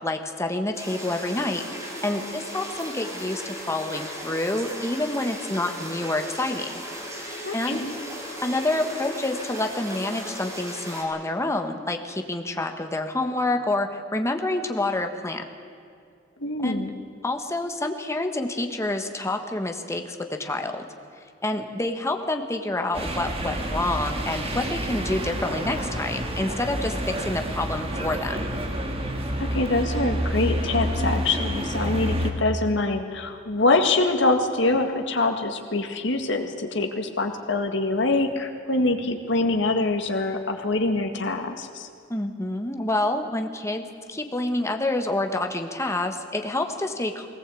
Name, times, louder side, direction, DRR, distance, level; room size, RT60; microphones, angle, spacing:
voice 1, 0.0-1.7 2.0-6.7 7.1-7.8 8.4-15.4 16.6-16.8 17.2-20.9 21.4-28.5 42.1-43.8 44.1-47.3, left 2 dB, 15° left, 5 dB, 1.4 m, -28 dB
sound 1, 0.7-11.0, equal, 15° right, 4.3 m, -36 dB
voice 2, 7.4-7.9 16.4-16.9 29.5-41.9, left 2 dB, 70° left, 5 dB, 1.9 m, -24 dB
sound 2, 22.9-32.3, equal, 30° right, 2.0 m, -29 dB
20.5 x 18.0 x 8.4 m, 2.4 s
head